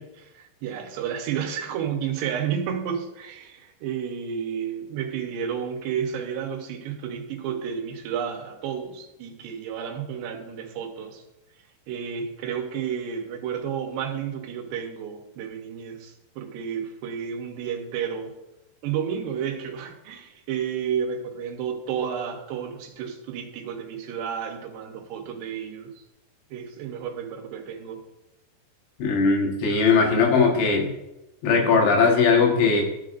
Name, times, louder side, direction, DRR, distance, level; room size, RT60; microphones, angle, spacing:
voice 1, 0.0-11.2 11.9-18.3 18.8-26.0 26.5-28.0, right 8 dB, 75° right, 2 dB, 2.8 m, -31 dB
voice 2, 29.0-30.9 31.4-32.8, left 4 dB, 70° left, 1 dB, 3.6 m, -19 dB
14.0 x 9.2 x 2.5 m, 0.97 s
omnidirectional pair, 5.6 m